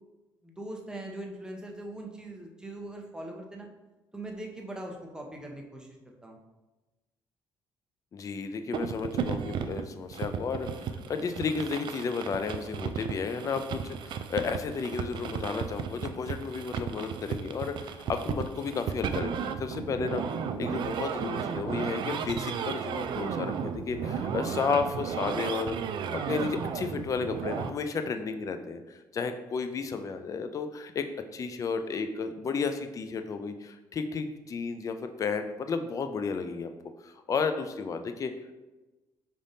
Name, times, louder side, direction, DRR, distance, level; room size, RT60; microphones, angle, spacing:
voice 1, 0.4-3.7 4.1-6.4, right 1 dB, 10° right, 1 dB, 0.8 m, -41 dB
voice 2, 8.1-10.7 11.1-20.2 20.6-25.8 26.1-31.1 31.3-36.7 37.0-38.3, left 5 dB, 40° left, 8 dB, 0.4 m, -32 dB
sound 1, 8.7-27.7, right 7 dB, 60° right, 0.3 m, -34 dB
5.1 x 3.4 x 2.7 m, 1.1 s
cardioid pair, 85°, 9 cm